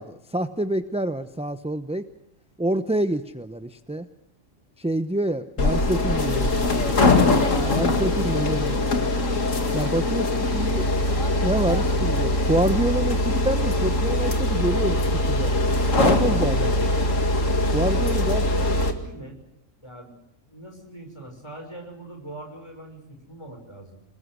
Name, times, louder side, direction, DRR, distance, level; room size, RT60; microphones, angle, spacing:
voice 1, 0.0-2.1 2.6-4.1 4.8-7.0 7.6-8.8 9.7-10.9 11.4-15.0 15.3-15.5 16.0-16.9 17.7-18.4, right 1 dB, 5° right, 9 dB, 0.6 m, -27 dB
sound 1, 5.6-18.9, left 2 dB, 70° left, 2.5 m, -22 dB
voice 2, 7.7-8.3 18.3-19.4 19.8-20.1 20.5-24.0, right 1 dB, 20° left, 3 dB, 5.8 m, -41 dB
28.0 x 20.5 x 6.3 m, 0.80 s
omnidirectional pair, 1.4 m